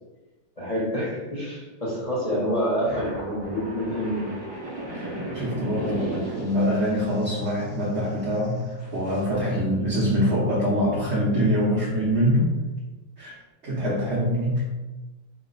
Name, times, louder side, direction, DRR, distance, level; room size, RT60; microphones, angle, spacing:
voice 1, 0.6-4.3, equal, 45° left, -6 dB, 0.4 m, -27 dB
sound 1, 2.8-9.2, right 1 dB, 15° right, 1.1 m, -35 dB
voice 2, 4.9-12.5 13.2-13.4 13.6-14.6, equal, 50° right, -6 dB, 0.9 m, -24 dB
4.8 x 2.1 x 3.9 m, 1.1 s
omnidirectional pair, 2.1 m